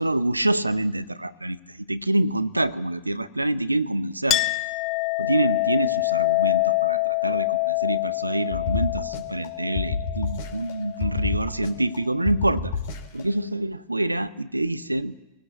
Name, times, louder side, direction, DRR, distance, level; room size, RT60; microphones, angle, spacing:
voice 1, 0.0-4.4 5.2-12.7 13.1-15.1, right 1 dB, 85° right, 15 dB, 0.8 m, -26 dB
Chink clink, 4.3-11.4, left 22 dB, 35° left, 0.7 m, -26 dB
sound 1, 8.5-9.5 9.8-10.7 11.0-12.0 12.3-13.2, left 6 dB, 55° left, 3.1 m, -29 dB
22.0 x 17.5 x 8.5 m, 1.1 s
figure-of-eight pair, 90°, 0 cm